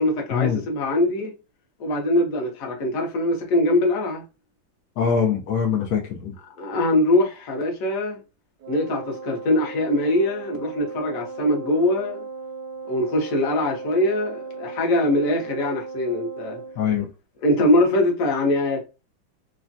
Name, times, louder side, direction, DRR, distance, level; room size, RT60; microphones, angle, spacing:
voice 1, 0.0-1.3 1.8-4.2 6.6-8.2 8.7-12.2 12.9-16.6 17.4-18.8, left 1 dB, 55° left, 1.0 m, -22 dB
voice 2, 5.0-6.3 16.8-17.1, left 7 dB, 80° left, 0.8 m, -23 dB
Wind instrument woodwind instrument, 8.6-16.8, right 4 dB, 75° right, 0.9 m, -37 dB
3.3 x 2.1 x 2.5 m
omnidirectional pair, 2.1 m